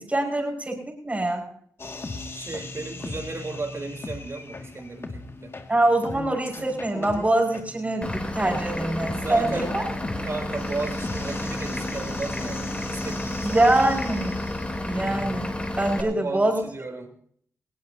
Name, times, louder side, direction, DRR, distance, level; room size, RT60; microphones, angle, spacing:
voice 1, 0.0-1.5 5.7-9.8 13.4-14.4 14.9-16.6, right 2 dB, 25° right, 0 dB, 5.6 m, -24 dB
sound 1, 1.8-15.4, left 3 dB, 40° left, 2.2 m, -38 dB
voice 2, 2.3-5.5 9.1-9.7 10.2-13.6 16.0-17.1, right 3 dB, 45° right, 5 dB, 3.8 m, -34 dB
Vehicle / Engine, 8.0-16.0, left 1 dB, 20° left, 3.5 m, -31 dB
20.5 x 16.5 x 2.9 m, 0.62 s
supercardioid pair, 50°, 6 cm